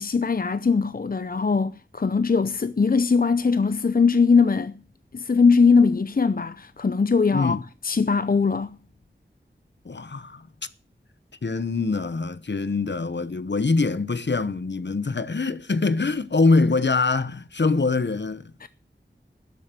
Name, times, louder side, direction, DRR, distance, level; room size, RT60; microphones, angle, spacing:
voice 1, 0.0-4.8 5.1-8.8 18.6-18.7, left 5 dB, 50° left, 0.6 m, -21 dB
voice 2, 7.3-7.6 9.8-10.5 11.4-18.7, left 3 dB, 65° left, 0.9 m, -24 dB
12.5 x 7.8 x 7.5 m
wide cardioid pair, 45°, 20 cm